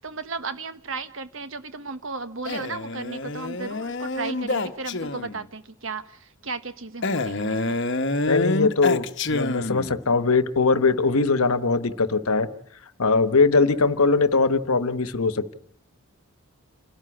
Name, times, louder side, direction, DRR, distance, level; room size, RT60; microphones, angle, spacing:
voice 1, 0.0-7.8 13.6-13.7, right 4 dB, 60° right, 11 dB, 1.3 m, -35 dB
Male speech man speaking, 2.5-5.5 7.0-10.0, left 2 dB, 55° left, 1.0 m, -27 dB
voice 2, 8.3-12.5 13.0-15.5, left 4 dB, 80° left, 12 dB, 1.1 m, -21 dB
28.5 x 12.5 x 9.8 m, 0.69 s
head